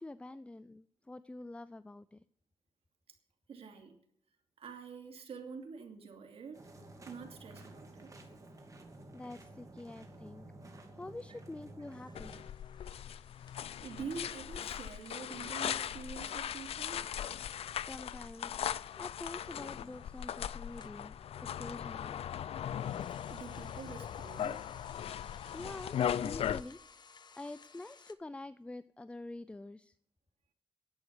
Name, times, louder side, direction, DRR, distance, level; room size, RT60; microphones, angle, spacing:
voice 1, 0.0-2.2 9.1-10.5 11.0-12.4 17.8-22.2 25.5-26.8 27.3-30.0, left 2 dB, 10° left, 14 dB, 0.4 m, -47 dB
voice 2, 3.5-4.0 4.6-6.7 7.1-8.1 11.3-11.4 13.5-17.0 23.3-24.6, right 5 dB, 75° right, 4 dB, 2.8 m, -46 dB
sound 1, 6.5-12.4, right 1 dB, 35° right, 2.7 m, -52 dB
sound 2, 11.9-21.0 22.6-28.1, left 5 dB, 45° left, 1.0 m, -60 dB
sound 3, 12.1-26.6, left 9 dB, 80° left, 0.4 m, -39 dB
11.0 x 8.3 x 9.6 m, 0.66 s
wide cardioid pair, 110°, 10 cm